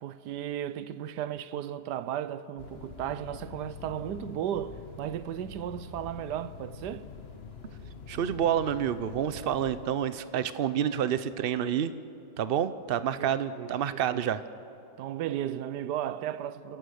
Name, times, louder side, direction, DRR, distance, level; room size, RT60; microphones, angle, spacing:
voice 1, 0.0-7.0 13.2-14.3 15.0-16.8, right 10 dB, 85° right, 1.3 m, -35 dB
sound 1, 2.6-9.9, left 5 dB, 40° left, 1.4 m, -45 dB
voice 2, 8.1-11.9 12.4-14.4, right 9 dB, 65° right, 0.5 m, -28 dB
28.5 x 17.0 x 6.5 m
omnidirectional pair, 1.7 m